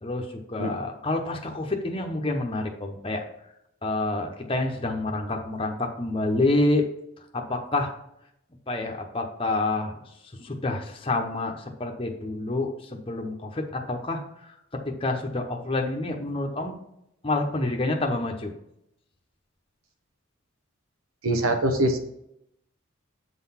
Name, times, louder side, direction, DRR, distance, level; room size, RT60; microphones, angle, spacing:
voice 1, 0.0-3.3 3.8-6.9 7.3-7.9 8.7-10.0 10.4-14.5 14.8-16.7 17.2-18.5, left 2 dB, 25° left, 2 dB, 0.8 m, -28 dB
voice 2, 21.2-22.0, right 1 dB, 80° right, 5 dB, 1.0 m, -23 dB
8.0 x 3.9 x 5.7 m, 0.78 s
head